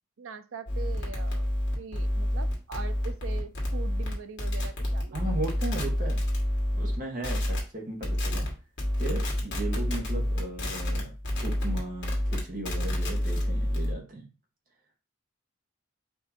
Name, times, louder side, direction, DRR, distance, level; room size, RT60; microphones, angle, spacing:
voice 1, 0.2-1.5 1.8-5.2, right 5 dB, 75° right, 10 dB, 0.5 m, -42 dB
sound 1, 0.7-6.9 7.2-7.6 8.0-8.5 8.8-13.9, left 1 dB, 55° left, 1.6 m, -28 dB
voice 2, 5.1-6.2 6.7-8.5 9.0-11.1 11.4-14.3, right 2 dB, 40° right, 1 dB, 1.2 m, -36 dB
4.6 x 2.7 x 4.2 m, 0.34 s
head